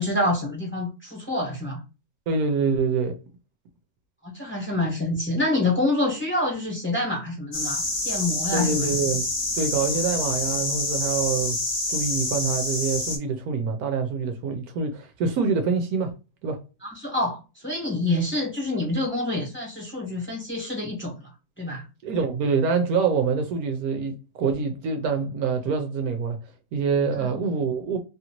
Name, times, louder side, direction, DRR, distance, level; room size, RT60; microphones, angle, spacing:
voice 1, 0.0-1.8 4.2-8.9 16.8-21.3 21.6-21.9 27.2-27.3, left 2 dB, 10° left, 1.1 m, -27 dB
voice 2, 2.3-3.2 8.5-9.2 9.5-11.6 11.9-16.1 16.4-16.6 22.0-26.4 26.7-28.0, right 5 dB, 75° right, 1.0 m, -25 dB
sound 1, 7.5-13.2, left 2 dB, 40° left, 0.8 m, -27 dB
2.8 x 2.5 x 2.9 m
omnidirectional pair, 1.7 m